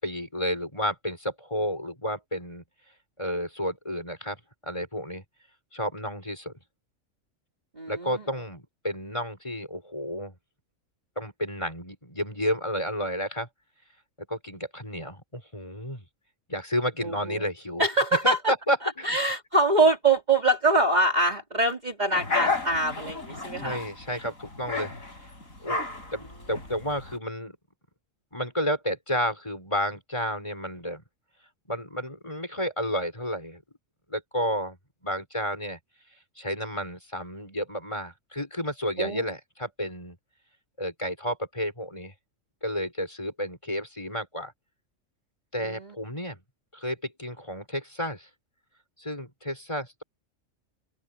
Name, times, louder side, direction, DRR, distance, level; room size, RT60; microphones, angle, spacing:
voice 1, 0.0-2.6 3.2-4.4 4.6-5.2 5.7-6.5 7.9-10.3 11.2-13.5 14.3-16.0 16.5-17.9 18.1-19.2 23.6-25.3 25.6-25.8 26.1-27.6 28.3-31.0 31.7-33.6 34.1-34.8 35.0-35.8 36.4-40.2 40.8-42.1 42.6-44.5 45.5-46.4 46.7-48.3 49.0-50.0, equal, 20° left, 6.2 m, -31 dB
voice 2, 7.8-8.2 17.0-17.4 17.8-18.5 19.0-23.8 39.0-39.2 45.6-45.9, right 2 dB, 30° right, 3.1 m, -24 dB
sound 1, 22.1-27.2, left 3 dB, 80° left, 7.8 m, -32 dB
open air
omnidirectional pair, 1.4 m